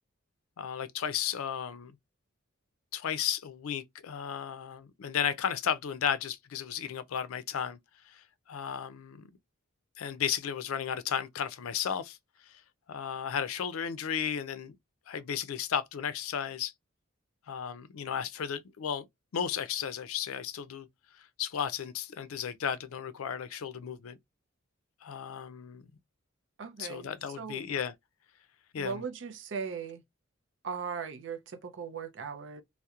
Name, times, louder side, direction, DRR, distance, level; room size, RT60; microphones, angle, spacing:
voice 1, 0.6-1.9 2.9-7.8 8.1-9.2 10.0-12.2 12.5-12.6 12.9-14.7 15.1-16.7 17.5-19.1 19.3-20.9 21.2-24.2 25.0-25.8 26.8-27.9 28.7-29.0, left 8 dB, 90° left, 0.4 m, -34 dB
voice 2, 26.6-27.1 27.4-27.6 28.8-30.0 30.6-32.6, right 6 dB, 60° right, 0.5 m, -38 dB
2.8 x 2.1 x 2.3 m
head